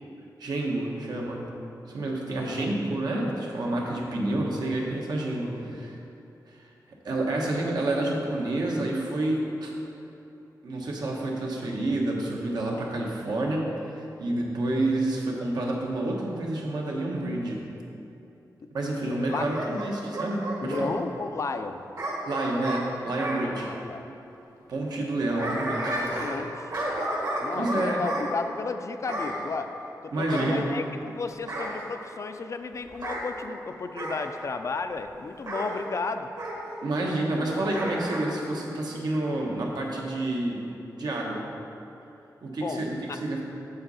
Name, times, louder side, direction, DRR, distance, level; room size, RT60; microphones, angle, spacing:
voice 1, 0.4-1.4 1.9-5.9 6.5-6.7 7.0-9.7 10.6-17.6 18.7-20.9 22.3-23.7 24.7-26.1 27.6-28.0 30.1-30.7 36.8-40.6 41.0-41.4 42.4-42.9 43.2-43.4, right 2 dB, 75° right, -1 dB, 1.2 m, -29 dB
voice 2, 2.4-2.7 5.6-5.9 18.6-18.7 19.3-19.5 20.6-21.8 23.5-24.0 25.3-26.7 27.4-29.7 30.0-36.3 42.6-43.2, left 4 dB, 45° left, 8 dB, 0.4 m, -34 dB
Bark / Growling, 19.3-20.9 22.0-23.4 25.0-26.4 26.7-28.3 29.1-29.4 30.3-31.1 31.5-31.8 32.9-33.2 34.0-34.2 35.5-35.7 36.4-36.6 37.7-38.3 38.6-38.7, right 1 dB, 60° right, 1.5 m, -32 dB
7.8 x 6.6 x 4.1 m, 2.9 s
wide cardioid pair, 105°, 7 cm